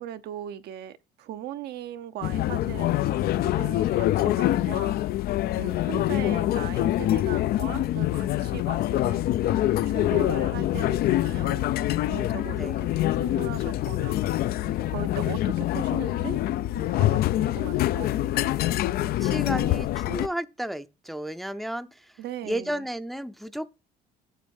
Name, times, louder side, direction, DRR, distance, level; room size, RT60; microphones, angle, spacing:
voice 1, 0.0-5.0 5.6-9.2 9.7-11.8 12.0-12.7 13.0-14.2 14.8-16.4 16.7-18.2 22.2-22.8, right 11 dB, 70° right, 0.8 m, -39 dB
sound 1, 2.2-20.3, left 14 dB, 65° left, 0.4 m, -25 dB
voice 2, 12.2-12.8 19.0-23.7, right 1 dB, ahead, 0.5 m, -33 dB
7.6 x 6.4 x 7.1 m
cardioid pair, 110°, 17 cm